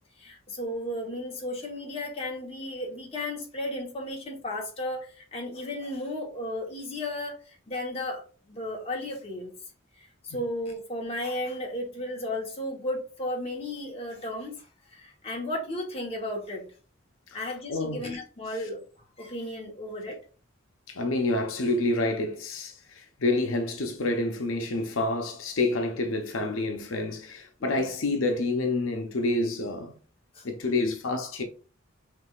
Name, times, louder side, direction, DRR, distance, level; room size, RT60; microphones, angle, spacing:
voice 1, 0.2-7.4 7.7-9.5 10.2-14.6 14.9-16.6 17.3-18.8 19.2-20.2 27.6-27.9 30.3-30.4, left 1 dB, 30° left, 1.1 m, -34 dB
voice 2, 17.3-18.1 20.9-29.9 30.4-31.4, left 2 dB, 85° left, 0.7 m, -28 dB
6.0 x 3.1 x 2.4 m
head